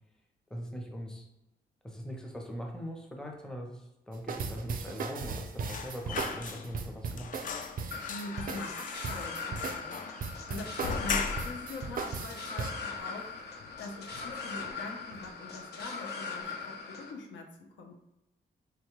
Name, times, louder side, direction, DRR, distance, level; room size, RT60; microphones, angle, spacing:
voice 1, 0.5-1.3 1.8-7.3, equal, 5° left, 1 dB, 0.6 m, -41 dB
sound 1, 4.1-12.7, right 5 dB, 50° right, 0.4 m, -37 dB
sound 2, 5.6-6.9 7.2-11.7 12.1-12.2 12.5-13.3 13.6-13.8 14.1-14.8 15.1-15.3, left 5 dB, 45° left, 0.4 m, -38 dB
sound 3, 7.9-17.1, left 4 dB, 60° left, 0.9 m, -40 dB
voice 2, 8.1-13.5 13.8-18.0, left 3 dB, 90° left, 2 dB, 0.7 m, -43 dB
3.7 x 2.2 x 3.0 m, 0.93 s
cardioid pair, 85°, 19 cm